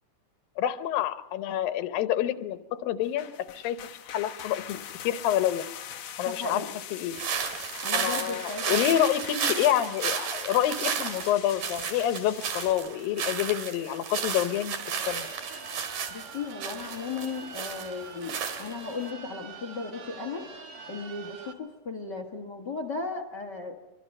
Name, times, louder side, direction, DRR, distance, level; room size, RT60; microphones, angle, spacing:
voice 1, 0.6-5.6 6.2-6.6 6.9-7.1 7.9-15.3, left 11 dB, 90° left, 11 dB, 2.7 m, -28 dB
sound 1, 3.0-12.7, left 10 dB, 60° left, 2.0 m, -43 dB
voice 2, 6.2-6.8 7.8-9.1 16.1-20.5 20.9-23.8, left 4 dB, 45° left, 5 dB, 1.6 m, -36 dB
sound 2, 7.1-19.1, right 7 dB, 70° right, 3.6 m, -33 dB
sound 3, 14.8-21.5, right 5 dB, 50° right, 2.2 m, -44 dB
24.5 x 24.0 x 5.4 m, 0.93 s
omnidirectional pair, 4.0 m